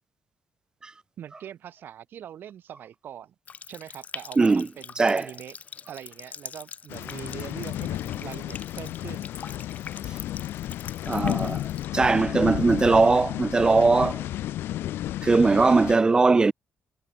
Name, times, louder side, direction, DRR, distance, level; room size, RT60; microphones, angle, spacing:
voice 1, 1.2-3.3 3.7-5.6 5.9-9.3, right 10 dB, 65° right, 4.6 m, -42 dB
Water tap faucet, 3.5-11.9, left 6 dB, 40° left, 1.6 m, -44 dB
voice 2, 4.4-4.7 5.0-5.3 11.1-11.6 11.9-14.2 15.2-16.5, right 3 dB, 20° right, 0.4 m, -20 dB
sound 1, 6.9-16.0, left 13 dB, 90° left, 2.7 m, -32 dB
cardioid pair, 120°, 4 cm